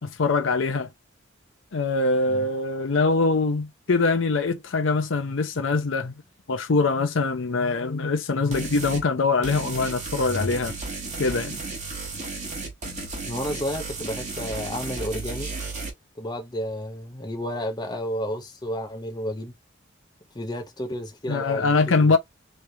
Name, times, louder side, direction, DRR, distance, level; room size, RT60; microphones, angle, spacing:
voice 1, 0.0-0.9 1.7-6.1 6.5-10.7 11.2-11.6 21.3-22.2, left 3 dB, 70° left, 0.6 m, -23 dB
sound 1, 8.5-9.0 9.4-15.9, right 3 dB, 35° right, 1.2 m, -34 dB
voice 2, 13.2-15.5 16.2-19.5 20.3-22.1, equal, 20° left, 0.7 m, -31 dB
3.5 x 3.2 x 2.7 m
head